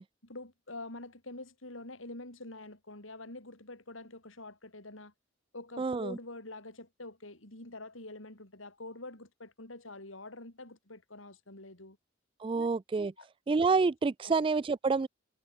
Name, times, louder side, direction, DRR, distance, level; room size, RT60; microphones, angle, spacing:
voice 1, 0.2-5.1 5.5-12.0 12.5-12.7 13.2-13.3 14.3-14.4, left 2 dB, 85° left, 6.1 m, -46 dB
voice 2, 5.8-6.2 12.4-13.1 13.5-15.1, right 4 dB, 25° right, 0.3 m, -28 dB
head